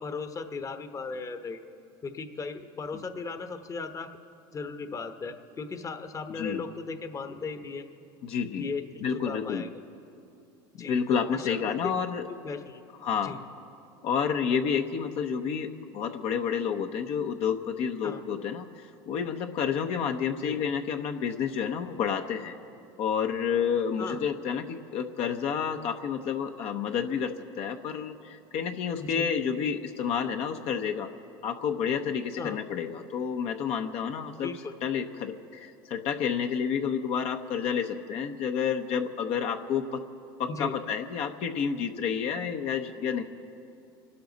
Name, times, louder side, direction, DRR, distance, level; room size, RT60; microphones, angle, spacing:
voice 1, 0.0-1.6 2.0-4.1 4.5-7.8 8.5-8.8 9.2-9.7 10.8-11.9 12.3-12.8 13.2-13.4 18.0-18.2 20.4-20.6 24.0-24.2 29.0-29.3 32.4-32.6 34.4-34.7 40.5-40.7, left 4 dB, 25° left, 8 dB, 1.0 m, -37 dB
voice 2, 8.2-8.7 9.0-9.7 10.9-12.3 13.0-13.4 14.0-22.5 23.0-31.1 31.4-34.5 34.8-40.0 40.4-43.2, left 7 dB, 55° left, 5 dB, 0.9 m, -30 dB
27.0 x 12.5 x 4.0 m, 2.6 s
supercardioid pair, 100°, 12 cm